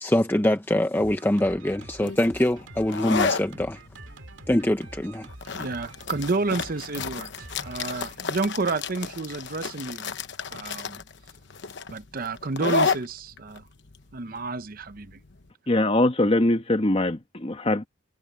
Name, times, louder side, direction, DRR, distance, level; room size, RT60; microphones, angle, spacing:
voice 1, 0.0-3.8 4.5-5.3, left 1 dB, 10° left, 0.6 m, -24 dB
Drum kit, 1.0-8.8, right 2 dB, 65° right, 2.4 m, -46 dB
sound 1, 2.0-15.4, left 4 dB, 60° left, 1.0 m, -32 dB
voice 2, 5.5-10.1 10.5-11.0 11.9-13.7 14.1-15.2, right 3 dB, 45° right, 0.7 m, -30 dB
voice 3, 15.7-17.9, left 1 dB, 30° left, 1.2 m, -22 dB
head